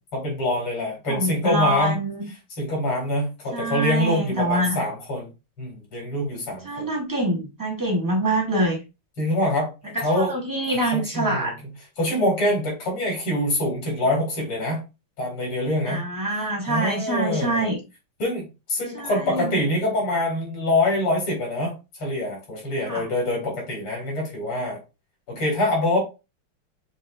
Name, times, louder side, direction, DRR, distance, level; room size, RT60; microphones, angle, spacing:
voice 1, 0.1-2.0 2.6-5.3 5.6-6.9 9.2-10.3 10.7-11.5 12.0-14.8 15.2-16.0 16.7-17.7 18.2-24.8 25.3-26.0, left 1 dB, 75° left, -1 dB, 3.2 m, -25 dB
voice 2, 1.1-2.2 3.5-4.8 6.6-8.8 9.9-11.5 15.9-17.8 18.9-19.6 22.8-23.1, right 1 dB, 30° right, -1 dB, 0.3 m, -25 dB
6.6 x 2.8 x 2.4 m, 0.27 s
omnidirectional pair, 2.4 m